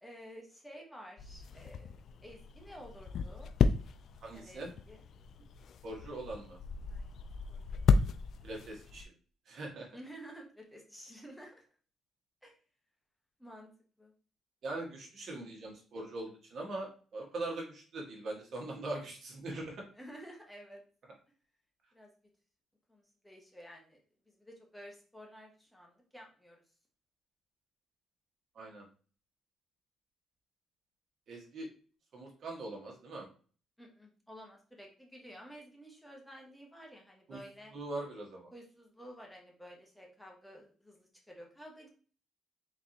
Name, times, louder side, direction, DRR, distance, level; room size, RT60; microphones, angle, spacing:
voice 1, 0.0-1.9 2.2-3.5 4.3-5.0 6.9-7.9 9.9-11.7 12.4-12.5 13.4-13.7 14.0-14.1 19.9-20.8 21.9-22.1 22.9-24.0 24.3-26.6 33.8-37.7 38.5-41.9, equal, 5° left, -1 dB, 1.2 m, -52 dB
sound 1, 1.2-9.1, left 5 dB, 65° left, 0.3 m, -34 dB
voice 2, 4.2-4.7 5.8-6.6 8.4-9.0 9.5-9.9 14.6-19.8 28.5-28.8 31.3-31.7 32.1-33.3 37.3-37.4 37.7-38.5, right 2 dB, 60° right, 0 dB, 1.6 m, -41 dB
4.0 x 3.4 x 2.9 m, 0.40 s
cardioid pair, 90°, 0 cm